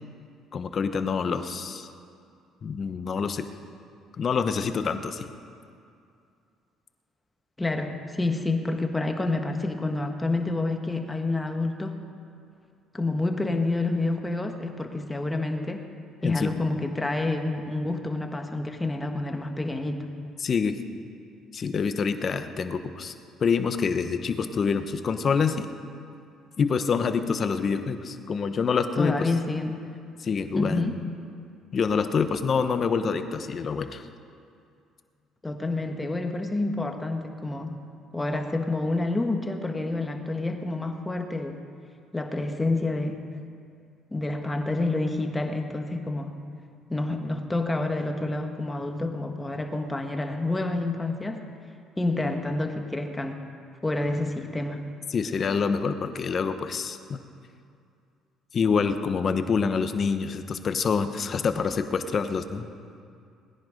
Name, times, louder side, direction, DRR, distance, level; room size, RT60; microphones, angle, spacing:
voice 1, 0.5-1.9 2.6-3.5 4.2-5.3 16.2-16.5 20.4-20.8 21.5-23.1 23.4-25.7 26.6-29.3 30.2-30.9 31.7-34.1 55.1-57.2 58.5-62.7, left 5 dB, 45° left, 9 dB, 1.0 m, -26 dB
voice 2, 7.6-12.0 12.9-15.8 16.2-20.1 29.0-29.8 30.5-31.0 35.4-37.7 38.1-41.6 42.1-43.2 44.1-46.4 46.9-51.4 52.0-53.4 53.8-54.8, left 2 dB, 15° left, 4 dB, 1.4 m, -28 dB
19.0 x 10.5 x 5.1 m, 2.4 s
cardioid pair, 100°, 0 cm